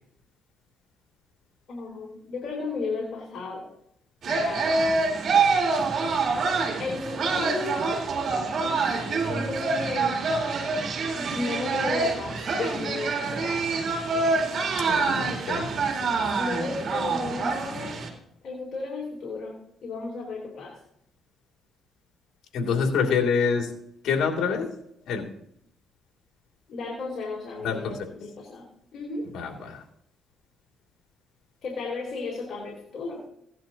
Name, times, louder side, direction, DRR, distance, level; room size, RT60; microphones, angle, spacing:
voice 1, 1.7-3.7 4.3-4.8 6.8-8.0 8.6-10.2 11.2-13.7 16.4-18.0 18.4-20.8 26.7-28.6 28.9-29.3 31.6-33.2, left 3 dB, 65° left, -2 dB, 3.6 m, -34 dB
sound 1, 4.2-18.1, right 4 dB, 60° right, 3.5 m, -26 dB
voice 2, 14.9-15.7 22.5-23.7 24.0-24.7 25.1-25.3 27.6-27.9 29.3-29.8, left 5 dB, 80° left, 2 dB, 2.7 m, -26 dB
17.5 x 11.0 x 2.9 m, 0.74 s
cardioid pair, 90°, 0 cm